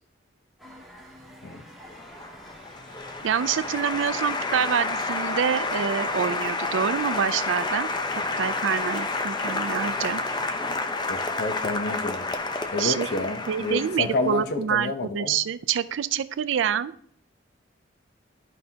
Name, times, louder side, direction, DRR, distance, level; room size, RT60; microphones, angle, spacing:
sound 1, 0.6-11.1, equal, ahead, 1.5 m, -47 dB
Applause, 1.9-14.3, left 3 dB, 25° left, 0.6 m, -30 dB
voice 1, 3.2-7.9 8.4-10.2 12.8-13.1 13.5-16.9, right 8 dB, 90° right, 15 dB, 0.4 m, -26 dB
voice 2, 11.1-12.2 12.7-15.4, left 3 dB, 60° left, 8 dB, 0.8 m, -29 dB
11.5 x 5.5 x 2.8 m, 0.65 s
head